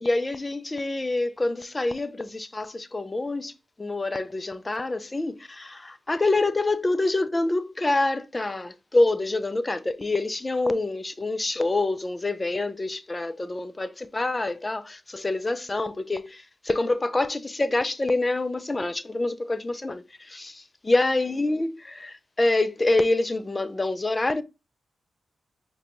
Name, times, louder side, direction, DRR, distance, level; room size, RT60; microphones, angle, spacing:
voice 1, 0.0-3.5 3.8-24.4, left 2 dB, 25° left, 0.4 m, -26 dB
5.0 x 2.2 x 2.9 m
supercardioid pair, 50°, 0 cm